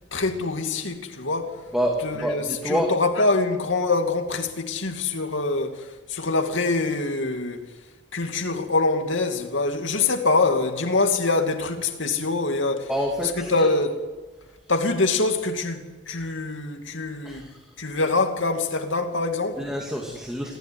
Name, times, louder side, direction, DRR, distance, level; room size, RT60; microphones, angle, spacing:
voice 1, 0.1-1.6 2.0-7.7 8.1-12.9 13.2-14.0 14.7-17.5 17.8-19.7, left 3 dB, 80° left, 2.5 m, -24 dB
voice 2, 1.7-2.9 12.9-13.7 17.2-17.6 19.6-20.6, equal, 5° right, 2.4 m, -27 dB
26.5 x 15.0 x 9.7 m
head